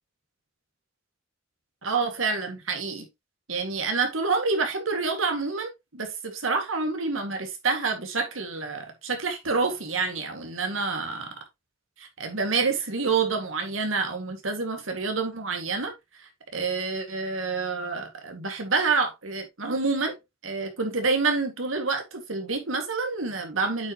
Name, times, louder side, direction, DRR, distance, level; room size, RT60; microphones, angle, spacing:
voice 1, 1.8-3.1 3.5-11.3 12.0-15.9 16.5-23.9, right 4 dB, 90° right, 2.1 m, -28 dB
8.8 x 5.8 x 3.0 m
head